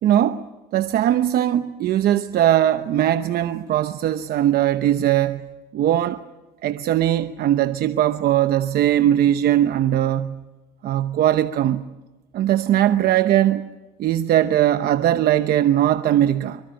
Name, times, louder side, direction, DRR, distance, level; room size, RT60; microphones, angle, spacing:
voice 1, 0.0-0.4 0.7-5.5 5.7-6.2 6.6-10.4 10.8-11.8 12.3-13.7 14.0-16.6, right 12 dB, 65° right, 0.9 m, -20 dB
24.5 x 24.0 x 8.9 m
cardioid pair, 110°, 17 cm